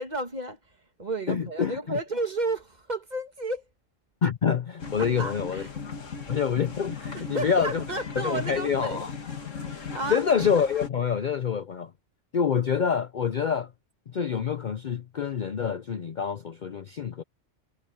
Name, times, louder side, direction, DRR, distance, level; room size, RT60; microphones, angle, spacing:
voice 1, 0.0-3.7 5.0-5.7 7.1-9.1 9.6-10.2, right 2 dB, 35° right, 2.0 m, -32 dB
voice 2, 1.3-2.0 4.2-5.6 6.3-7.8 8.2-9.1 10.1-11.9 12.3-13.7 14.1-17.2, left 7 dB, 50° left, 0.7 m, -26 dB
sound 1, 4.8-10.9, left 5 dB, 90° left, 2.3 m, -37 dB
omnidirectional pair, 1.3 m